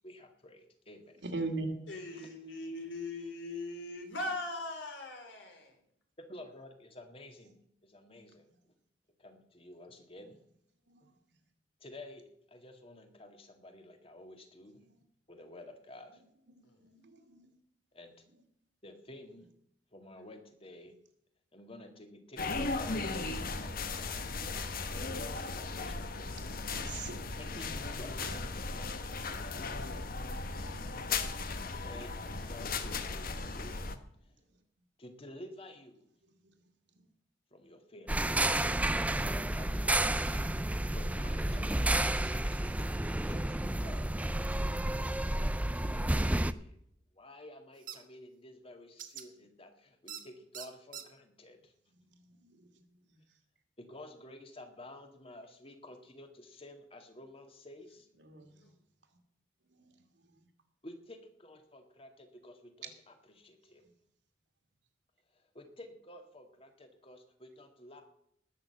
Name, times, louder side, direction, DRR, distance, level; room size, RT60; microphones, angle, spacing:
voice 1, 0.0-1.2 6.3-8.5 9.2-10.4 11.0-11.1 11.8-14.8 15.3-16.2 17.9-18.1 18.8-19.5 19.9-21.0 21.5-23.1 23.6-26.4 27.4-28.2 28.7-29.8 31.7-32.2 32.5-33.8 34.2-34.3 35.0-36.1 37.5-38.6 39.2-45.4 45.7-46.8 47.1-51.7 53.8-58.1 60.8-63.8 65.3-68.0, left 1 dB, 30° left, 5 dB, 2.0 m, -52 dB
voice 2, 1.2-1.7 10.9-11.0 16.8-17.5 25.0-25.3 26.4-27.2 28.2-28.3 52.1-52.7 58.2-58.6, right 3 dB, 70° right, 4 dB, 2.5 m, -40 dB
voice 3, 1.9-5.7 16.6-16.8 58.5-58.7, left 2 dB, 85° left, 4 dB, 3.7 m, -40 dB
sound 1, 22.4-34.0, left 3 dB, 50° left, 1.2 m, -37 dB
sound 2, 38.1-46.5, right 1 dB, 10° right, 0.5 m, -31 dB
sound 3, 47.9-48.0 49.0-49.2 50.1-50.2 50.5-51.0, right 9 dB, 50° right, 1.4 m, -43 dB
19.5 x 6.6 x 7.8 m, 0.72 s
head